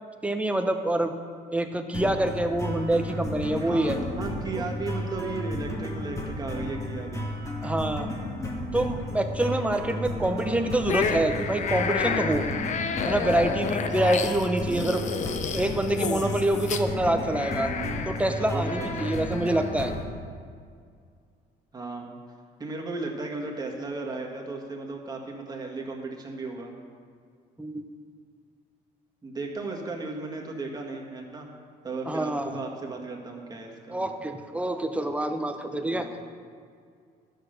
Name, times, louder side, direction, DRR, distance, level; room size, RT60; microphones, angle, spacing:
voice 1, 0.2-1.1 1.5-4.0 4.6-4.7 7.6-8.1 8.7-12.5 13.0-15.0 15.5-17.7 18.1-19.9 27.6-27.8 32.1-32.6 33.9-36.1, right 1 dB, 10° right, 6 dB, 0.8 m, -26 dB
sound 1, 1.9-20.1, left 1 dB, 20° left, 1.8 m, -33 dB
voice 2, 3.6-7.3 12.5-12.9 13.4-13.8 14.7-14.9 18.3-19.1 21.7-22.2 22.6-26.8 29.2-31.5 31.8-34.0 35.9-36.1, right 3 dB, 25° right, 0 dB, 1.8 m, -35 dB
sound 2, 10.8-20.0, left 6 dB, 45° left, 0.7 m, -31 dB
12.0 x 6.5 x 6.4 m, 2.2 s
cardioid pair, 110°, 17 cm